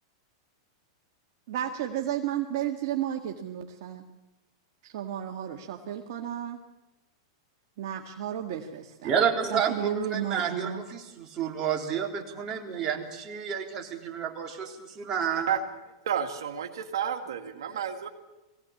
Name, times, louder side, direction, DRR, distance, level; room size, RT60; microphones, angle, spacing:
voice 1, 1.5-4.0 4.8-6.6 7.8-9.1 9.5-10.8, right 10 dB, 60° right, 1 dB, 1.9 m, -33 dB
voice 2, 9.0-15.6 17.7-17.8, right 7 dB, 30° right, 1 dB, 3.6 m, -30 dB
voice 3, 16.1-18.1, right 8 dB, 80° right, 5 dB, 2.0 m, -31 dB
22.0 x 17.0 x 8.6 m, 1.0 s
hypercardioid pair, 125°, 2 cm